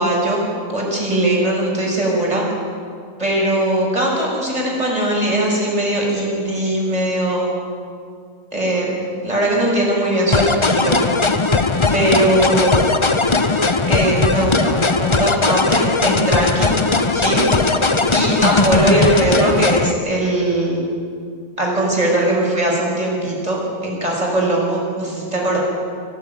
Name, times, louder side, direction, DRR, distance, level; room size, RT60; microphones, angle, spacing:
voice 1, 0.0-2.5 3.2-7.6 8.5-11.0 11.9-12.8 13.9-16.7 17.1-17.9 18.1-20.9 21.6-25.6, right 1 dB, 20° right, -3 dB, 6.0 m, -20 dB
sound 1, 10.3-19.9, left 3 dB, 30° left, 0.6 m, -18 dB
26.0 x 16.0 x 9.3 m, 2.3 s
omnidirectional pair, 1.8 m